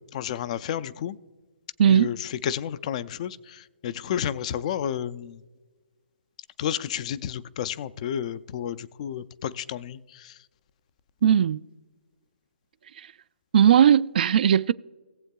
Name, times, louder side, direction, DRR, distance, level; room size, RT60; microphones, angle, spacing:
voice 1, 0.1-1.2 1.9-5.4 6.6-10.4, left 9 dB, 35° left, 0.4 m, -31 dB
voice 2, 1.8-2.1 11.2-11.6 13.5-14.7, right 9 dB, 50° right, 0.3 m, -18 dB
18.5 x 7.8 x 2.3 m
hypercardioid pair, 150°, 6 cm